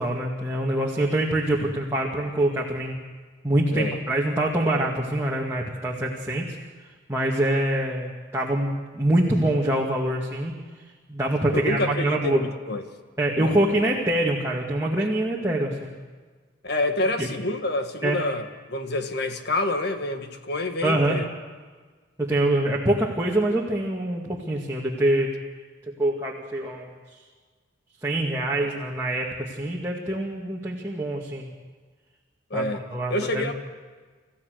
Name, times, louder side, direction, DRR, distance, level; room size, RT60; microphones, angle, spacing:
voice 1, 0.0-3.0 3.4-6.4 7.1-10.5 11.1-12.4 13.2-15.9 17.2-17.3 18.0-18.2 20.8-21.2 22.2-25.3 26.0-26.9 28.0-31.5 32.5-33.5, right 1 dB, 15° right, -4 dB, 2.0 m, -25 dB
voice 2, 11.5-12.8 13.4-13.6 16.6-21.3 28.6-28.7 32.5-32.8 33.1-33.5, left 2 dB, 55° left, 6 dB, 1.6 m, -27 dB
27.5 x 15.0 x 6.6 m, 1.4 s
head